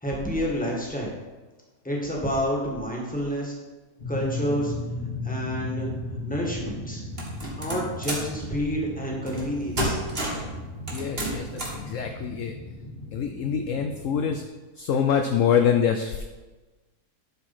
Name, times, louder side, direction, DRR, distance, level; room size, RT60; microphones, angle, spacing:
voice 1, 0.0-1.1 1.8-3.5 4.1-4.7 5.2-5.9 6.2-7.0 7.5-10.0, equal, 5° left, -3 dB, 1.7 m, -29 dB
sound 1, 4.0-14.3, left 1 dB, 35° left, 1.2 m, -36 dB
sound 2, 7.2-8.3 9.3-9.5 9.8-10.5 10.9-11.8, right 1 dB, 35° right, 1.9 m, -30 dB
voice 2, 10.9-11.5 11.7-12.5 13.1-14.4 14.8-16.2, left 7 dB, 65° left, 5 dB, 0.8 m, -25 dB
11.5 x 4.6 x 4.3 m, 1.2 s
omnidirectional pair, 1.7 m